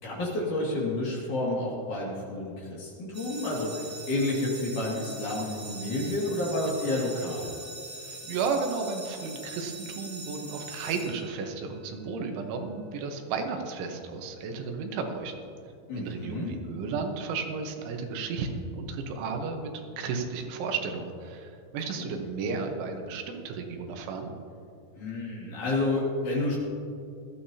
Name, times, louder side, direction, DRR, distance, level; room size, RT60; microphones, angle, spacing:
voice 1, 0.0-7.5 15.9-16.5 21.9-22.2 25.0-26.6, left 2 dB, 50° left, -4 dB, 3.2 m, -30 dB
sound 1, 3.1-11.8, right 2 dB, 15° right, 3.5 m, -42 dB
voice 2, 8.0-15.4 16.0-19.7 20.0-24.3, right 4 dB, 85° right, 4 dB, 3.6 m, -33 dB
19.0 x 13.5 x 2.8 m, 2.6 s
omnidirectional pair, 5.4 m